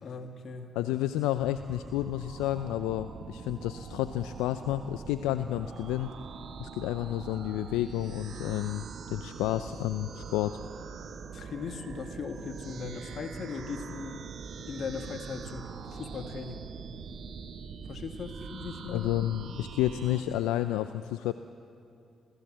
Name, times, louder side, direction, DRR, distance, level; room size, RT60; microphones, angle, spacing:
voice 1, 0.0-0.7 11.3-14.2 14.7-16.6 17.9-19.1, left 5 dB, 60° left, 6 dB, 2.0 m, -39 dB
voice 2, 0.7-6.1 6.6-10.6 18.9-21.3, left 14 dB, 85° left, 11 dB, 0.4 m, -31 dB
sound 1, 1.3-20.2, right 6 dB, 70° right, 1.7 m, -43 dB
27.5 x 15.0 x 7.6 m, 2.6 s
hypercardioid pair, 45°, 0 cm